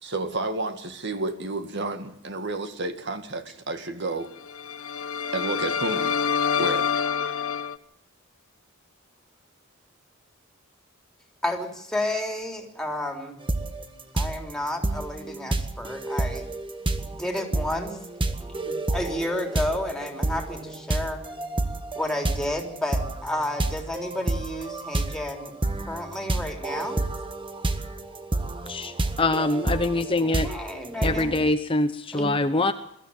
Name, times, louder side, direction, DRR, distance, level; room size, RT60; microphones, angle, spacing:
voice 1, 0.0-4.3 5.3-6.2 6.6-6.9, right 2 dB, 55° right, 9 dB, 2.0 m, -30 dB
sound 1, 4.4-7.8, left 7 dB, 85° left, 1.1 m, -27 dB
voice 2, 11.4-13.4 14.1-16.5 17.0-18.0 18.4-21.2 22.0-25.5 25.9-27.0 30.4-31.3 32.1-32.3, left 1 dB, 5° left, 3 dB, 3.6 m, -31 dB
sound 2, 13.5-13.8 14.2-31.5, right 2 dB, 25° right, 1.6 m, -29 dB
voice 3, 28.7-30.5 31.0-32.7, left 2 dB, 25° left, 9 dB, 0.9 m, -24 dB
22.5 x 14.0 x 9.1 m, 0.75 s
head